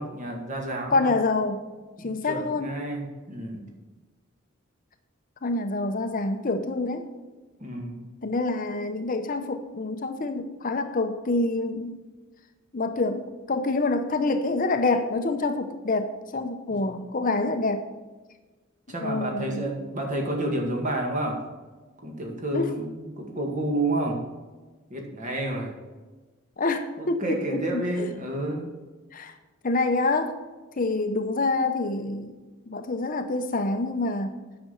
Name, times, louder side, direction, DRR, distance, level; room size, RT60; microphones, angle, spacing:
voice 1, 0.0-1.1 2.0-3.6 7.6-8.1 16.7-16.8 18.9-21.4 22.0-24.2 24.9-25.8 27.0-28.7, right 1 dB, 40° right, 1 dB, 2.1 m, -30 dB
voice 2, 0.9-1.6 2.0-2.7 5.4-7.1 8.2-12.0 12.7-17.9 19.0-19.8 22.5-22.7 26.6-28.1 29.1-29.3 29.6-30.4 30.8-32.4 32.7-34.3, left 3 dB, 40° left, 7 dB, 0.7 m, -27 dB
9.1 x 6.1 x 6.8 m, 1.3 s
head